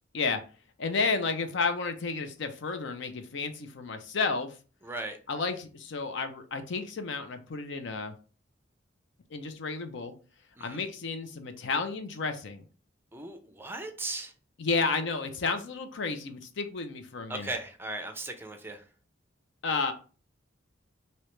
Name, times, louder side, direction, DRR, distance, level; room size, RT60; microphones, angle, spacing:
voice 1, 0.8-4.5 5.3-8.1 9.3-10.1 10.6-12.6 14.6-17.5 19.6-19.9, left 4 dB, 65° left, 7 dB, 0.5 m, -31 dB
voice 2, 4.8-5.2 10.6-10.8 13.1-14.3 17.3-18.9, right 2 dB, 10° right, 6 dB, 0.4 m, -37 dB
3.2 x 2.8 x 3.1 m, 0.37 s
head